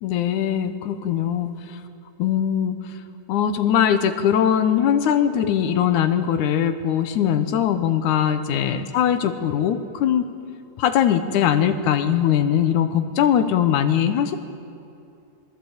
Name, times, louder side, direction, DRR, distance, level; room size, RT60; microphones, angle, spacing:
voice 1, 0.0-1.8 2.2-3.0 3.3-10.3 10.8-14.4, left 9 dB, 70° left, 10 dB, 2.3 m, -21 dB
26.5 x 21.5 x 8.2 m, 2.7 s
omnidirectional pair, 4.0 m